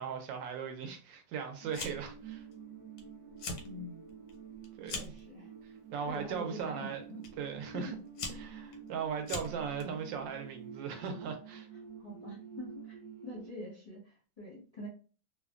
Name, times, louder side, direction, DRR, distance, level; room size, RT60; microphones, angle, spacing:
voice 1, 0.0-2.4 4.8-5.1 5.6-7.0 7.4-8.0 8.3-11.7, right 7 dB, 75° right, 1.2 m, -38 dB
sound 1, 1.6-13.5, right 7 dB, 60° right, 0.9 m, -49 dB
Fire, 1.7-2.2 2.5-3.0 3.3-3.7 4.1-5.2 6.0-6.4 7.2-7.3 7.9-9.8, left 3 dB, 90° left, 1.4 m, -41 dB
voice 2, 3.6-4.0 4.9-5.5 6.1-7.2 7.7-7.9 12.0-14.9, left 1 dB, 35° left, 0.6 m, -45 dB
3.2 x 2.1 x 2.3 m
omnidirectional pair, 2.1 m